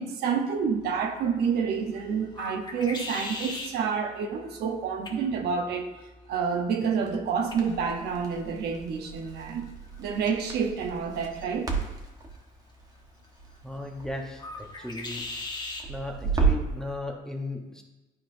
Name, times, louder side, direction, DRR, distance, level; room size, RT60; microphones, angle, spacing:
voice 1, 0.0-5.9 6.3-9.7 10.0-11.7, right 6 dB, 70° right, 4 dB, 0.9 m, -28 dB
sound 1, 0.6-15.9, left 3 dB, 25° left, 1.1 m, -43 dB
Crackle, 7.5-16.8, right 5 dB, 20° right, 1.2 m, -33 dB
voice 2, 13.6-15.3 15.9-17.8, left 1 dB, 5° left, 2 dB, 1.0 m, -36 dB
11.5 x 4.2 x 2.7 m, 1.1 s
cardioid pair, 110°, 17 cm